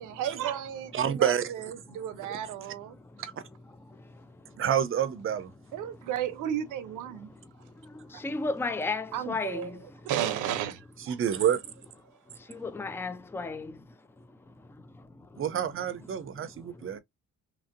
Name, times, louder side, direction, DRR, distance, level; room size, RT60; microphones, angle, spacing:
voice 1, 0.0-2.9 5.7-7.3 8.1-8.2 9.1-9.7 10.0-10.8 11.1-11.2, right 10 dB, 90° right, 0.7 m, -33 dB
voice 2, 0.9-1.7 4.6-5.5 11.1-11.6 15.4-17.0, right 9 dB, 45° right, 0.6 m, -28 dB
voice 3, 1.9-2.5 2.9-3.2 3.7-4.6 5.9-6.0 7.1-10.1 12.3-15.6 16.1-17.0, left 3 dB, 10° left, 0.4 m, -38 dB
3.0 x 2.7 x 2.5 m
cardioid pair, 90°, 30 cm